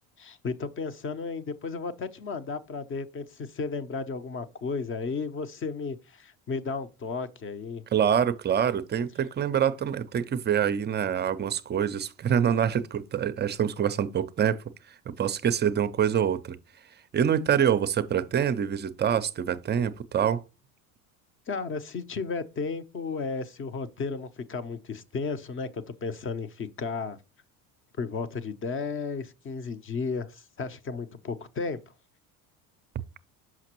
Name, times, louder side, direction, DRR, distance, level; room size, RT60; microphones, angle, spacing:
voice 1, 0.2-7.8 21.5-27.2 28.0-31.8, left 4 dB, 30° left, 0.7 m, -34 dB
voice 2, 7.9-14.6 15.1-16.6 17.1-20.4, right 8 dB, 25° right, 0.5 m, -25 dB
5.9 x 5.7 x 3.0 m
supercardioid pair, 85°, 41 cm